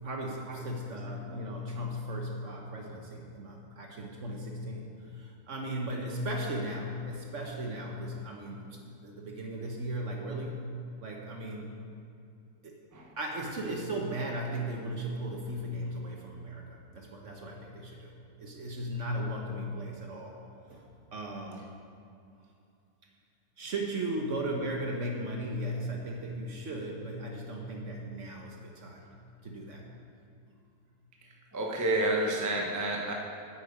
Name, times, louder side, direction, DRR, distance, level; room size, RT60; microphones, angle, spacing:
voice 1, 0.0-10.7 11.0-11.7 12.6-12.8 13.2-20.4 20.7-21.7 23.6-29.1 29.4-29.9, right 1 dB, 50° right, 0 dB, 1.2 m, -37 dB
voice 2, 31.5-33.1, right 2 dB, 15° right, -1 dB, 0.7 m, -29 dB
8.7 x 8.1 x 5.3 m, 2.6 s
omnidirectional pair, 1.8 m